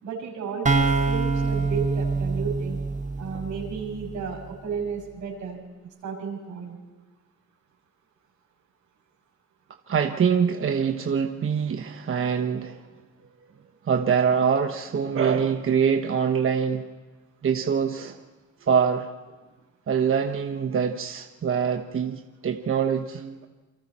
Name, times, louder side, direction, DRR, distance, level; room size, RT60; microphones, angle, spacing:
voice 1, 0.0-2.8 3.2-5.6 6.0-6.8, right 5 dB, 85° right, 0 dB, 6.1 m, -33 dB
sound 1, 0.7-4.3, right 4 dB, 25° right, 1.4 m, -25 dB
voice 2, 9.9-12.8 13.8-16.9 17.4-18.2 18.6-19.1 19.9-23.5, right 7 dB, 45° right, 5 dB, 1.2 m, -24 dB
28.0 x 24.0 x 4.3 m, 1.3 s
cardioid pair, 90°, 30 cm